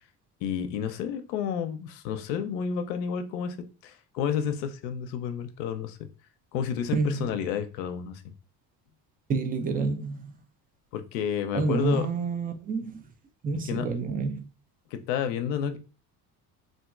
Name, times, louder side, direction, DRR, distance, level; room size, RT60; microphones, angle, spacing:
voice 1, 0.4-3.6 3.8-6.0 6.5-8.2 10.9-12.1 13.7-13.9 14.9-15.8, left 8 dB, 80° left, 0.6 m, -30 dB
voice 2, 6.9-7.3 9.3-10.3 11.5-13.0 13.4-14.5, right 4 dB, 20° right, 0.3 m, -28 dB
2.9 x 2.5 x 2.3 m
hypercardioid pair, 65°, 49 cm